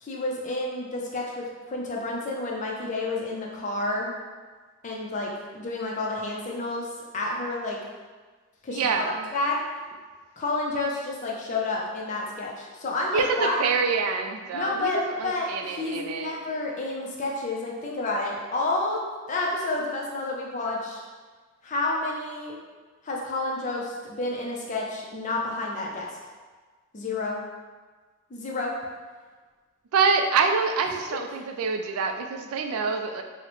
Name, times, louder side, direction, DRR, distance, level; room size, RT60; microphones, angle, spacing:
voice 1, 0.0-4.1 4.8-6.9 7.1-7.8 8.6-9.6 10.4-13.6 14.5-21.0 21.6-22.6 23.0-26.1 26.9-27.4 28.3-28.8, left 2 dB, 35° left, -2 dB, 0.5 m, -30 dB
voice 2, 8.7-9.3 13.1-16.4 29.9-33.2, right 5 dB, 80° right, 5 dB, 0.3 m, -26 dB
3.8 x 2.1 x 3.0 m, 1.4 s
head